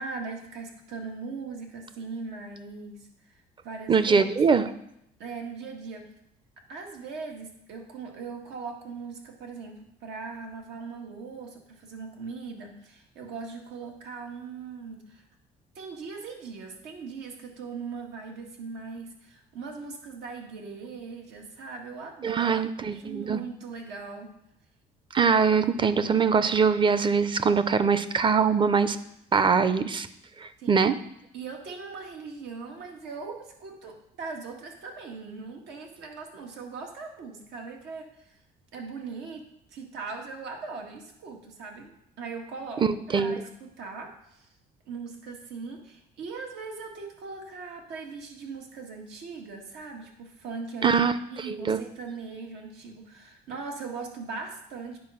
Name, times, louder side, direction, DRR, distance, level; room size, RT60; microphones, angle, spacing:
voice 1, 0.0-3.1 3.6-4.3 5.2-6.0 6.7-15.2 15.8-22.5 22.8-24.3 30.6-30.9 31.3-38.4 38.7-39.4 39.7-41.9 42.2-44.5 44.9-50.9 51.3-55.0, right 4 dB, 90° right, 1 dB, 1.9 m, -40 dB
voice 2, 3.9-4.7 22.2-23.4 25.1-29.0 29.3-30.1 30.4-31.0 42.8-43.4 50.8-51.1 51.5-51.8, right 5 dB, 30° right, 13 dB, 0.6 m, -23 dB
9.6 x 4.7 x 5.7 m, 0.79 s
cardioid pair, 110°, 17 cm